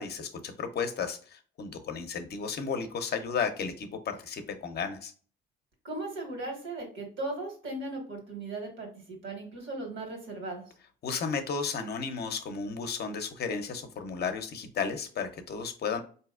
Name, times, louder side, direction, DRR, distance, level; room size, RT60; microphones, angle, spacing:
voice 1, 0.0-5.1 11.0-16.0, left 5 dB, 55° left, 7 dB, 0.6 m, -33 dB
voice 2, 5.8-10.6, right 2 dB, 75° right, 1 dB, 1.6 m, -37 dB
4.1 x 2.7 x 2.4 m, 0.42 s
cardioid pair, 90°, 20 cm